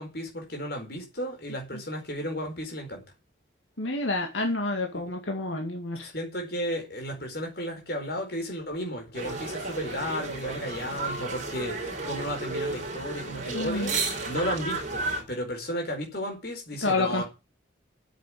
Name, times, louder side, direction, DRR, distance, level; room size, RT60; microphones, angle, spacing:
voice 1, 0.0-3.0 4.9-5.0 5.9-17.2, equal, 55° left, 4.8 m, -34 dB
voice 2, 3.8-6.1 13.5-13.9 16.8-17.2, left 2 dB, 85° left, 2.2 m, -29 dB
sound 1, 9.1-15.2, right 3 dB, 40° right, 4.2 m, -33 dB
9.4 x 7.5 x 8.7 m
head